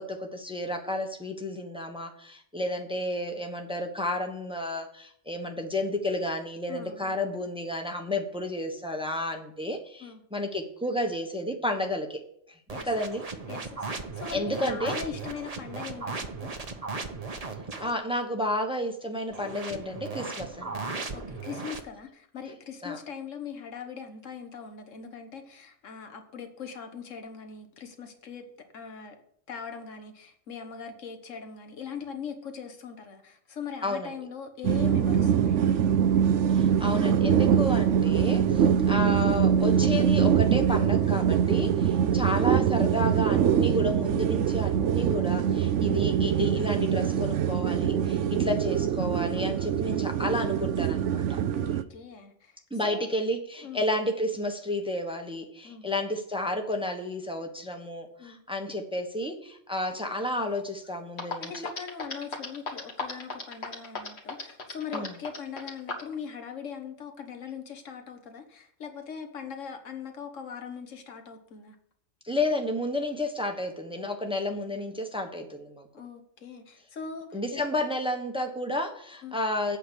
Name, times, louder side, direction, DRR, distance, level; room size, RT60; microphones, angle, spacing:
voice 1, 0.0-12.2 12.5-12.6 12.8-13.2 14.3-14.9 17.8-20.8 22.8-23.0 33.8-34.1 36.5-51.3 52.7-61.5 64.9-65.1 72.2-75.9 77.3-79.8, left 1 dB, 5° right, 4 dB, 1.1 m, -31 dB
voice 2, 6.7-7.1 10.0-10.2 12.7-12.9 13.5-16.5 21.1-28.4 28.7-29.1 29.5-35.9 48.1-48.4 51.5-52.5 52.8-53.1 53.6-53.8 55.6-55.9 58.2-58.4 61.4-71.7 75.9-77.6 79.2-79.4, left 6 dB, 75° left, 6 dB, 1.7 m, -40 dB
sound 1, 12.7-17.9 19.3-21.8, right 3 dB, 30° right, 1.0 m, -37 dB
sound 2, 34.6-51.8, right 8 dB, 70° right, 0.9 m, -24 dB
sound 3, 60.8-60.9 61.2-66.1, left 4 dB, 55° left, 1.9 m, -34 dB
8.3 x 6.0 x 8.1 m, 0.66 s
omnidirectional pair, 1.3 m